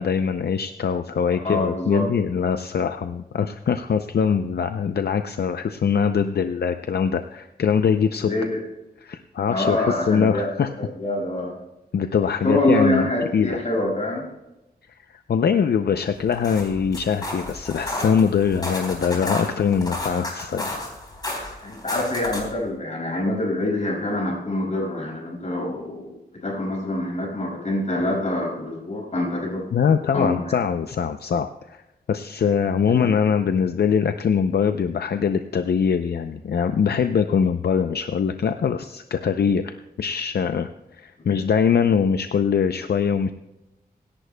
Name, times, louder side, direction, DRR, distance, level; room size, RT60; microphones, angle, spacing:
voice 1, 0.0-8.3 9.0-10.7 11.9-13.6 15.1-20.7 29.7-31.8 32.1-43.3, left 7 dB, 75° left, 8 dB, 0.5 m, -22 dB
voice 2, 1.4-2.0 8.2-8.6 9.5-10.5 10.8-11.5 12.4-14.3 21.6-29.6 30.1-30.6 33.0-33.1 41.3-41.4, left 1 dB, 45° left, -2 dB, 5.7 m, -25 dB
sound 1, 16.2-22.6, left 1 dB, 25° left, 3.9 m, -32 dB
24.5 x 11.5 x 2.2 m, 0.96 s
wide cardioid pair, 145°, 17 cm